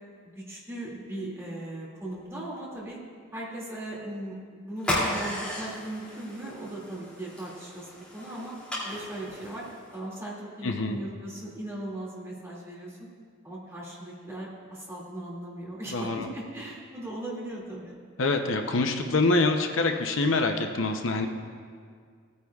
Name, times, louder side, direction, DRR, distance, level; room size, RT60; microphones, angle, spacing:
voice 1, 0.2-3.0 3.3-8.5 8.8-9.7 9.9-13.1 13.4-18.0, right 1 dB, 15° right, -5 dB, 2.3 m, -38 dB
sound 1, 4.8-10.0, left 1 dB, 5° left, 2.6 m, -34 dB
voice 2, 10.6-11.0 15.9-16.3 18.2-21.3, left 3 dB, 75° left, 5 dB, 0.7 m, -25 dB
17.5 x 9.6 x 2.4 m, 2.1 s
head